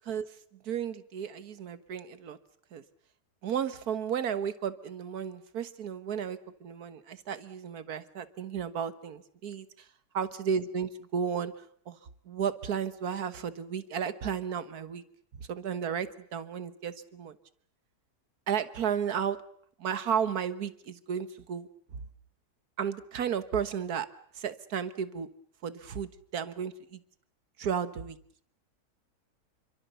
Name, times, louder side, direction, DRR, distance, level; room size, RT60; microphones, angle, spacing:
voice 1, 0.7-2.4 2.7-2.8 3.4-9.7 10.1-11.5 11.9-12.0 12.3-15.0 15.5-17.3 18.5-19.4 19.8-21.7 22.8-24.1 24.4-25.3 25.6-27.0 27.6-28.2, right 7 dB, 70° right, 13 dB, 1.7 m, -33 dB
27.0 x 24.0 x 6.9 m, 0.64 s
omnidirectional pair, 1.7 m